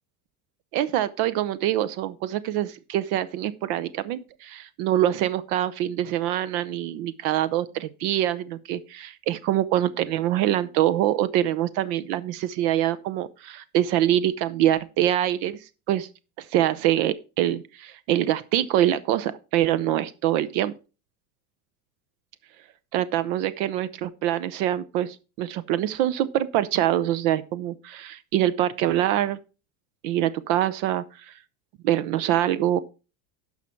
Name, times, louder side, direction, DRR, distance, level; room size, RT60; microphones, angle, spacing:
voice 1, 0.7-15.6 15.9-16.1 16.4-20.7 22.9-29.4 30.0-31.3 31.8-32.8, right 12 dB, 70° right, 0.8 m, -24 dB
11.5 x 5.8 x 4.5 m
supercardioid pair, 135°, 46 cm